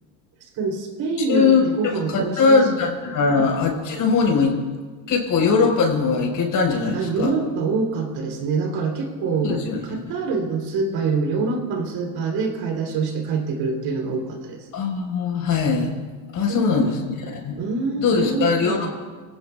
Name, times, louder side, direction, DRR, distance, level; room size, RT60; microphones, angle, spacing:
voice 1, 0.6-2.6 3.3-3.5 6.9-14.7 16.5-16.9 17.6-19.0, right 4 dB, 50° right, 2 dB, 3.4 m, -25 dB
voice 2, 1.3-4.5 5.1-7.4 9.4-10.0 14.7-15.9 16.3-17.6 18.0-19.0, left 4 dB, 40° left, 1 dB, 4.7 m, -21 dB
29.5 x 18.0 x 2.4 m, 1.5 s
supercardioid pair, 120°, 48 cm